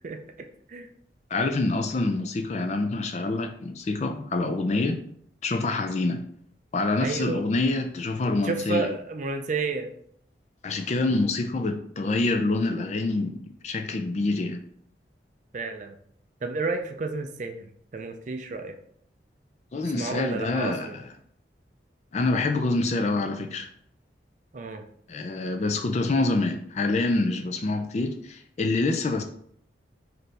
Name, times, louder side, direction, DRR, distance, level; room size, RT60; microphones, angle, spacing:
voice 1, 1.3-5.0 5.4-6.2 6.7-8.9 10.6-14.6 19.7-20.9 22.1-23.7 25.1-29.2, left 2 dB, 40° left, 0.4 m, -26 dB
voice 2, 7.0-7.4 8.4-9.9 15.5-16.0 16.4-18.8 19.9-21.0 24.5-24.8, right 4 dB, 45° right, 0.4 m, -31 dB
4.3 x 2.7 x 3.2 m
head